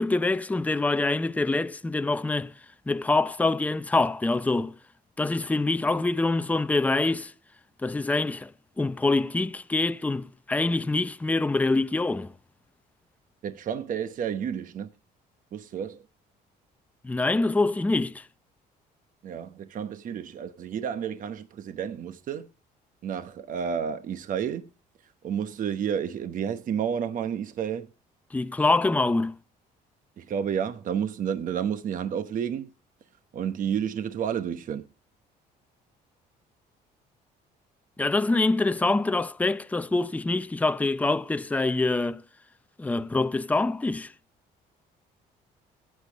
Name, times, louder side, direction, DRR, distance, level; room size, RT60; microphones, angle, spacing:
voice 1, 0.0-2.5 2.9-4.7 5.2-7.3 7.8-8.5 8.8-12.3 17.0-18.2 28.3-29.3 38.0-42.2 42.8-44.1, left 3 dB, 10° left, 0.5 m, -25 dB
voice 2, 13.4-14.9 15.5-16.0 19.2-22.5 23.0-24.7 25.2-27.9 30.2-32.7 33.3-34.9, right 8 dB, 50° right, 1.0 m, -30 dB
17.0 x 8.6 x 3.5 m
cardioid pair, 110°, 17 cm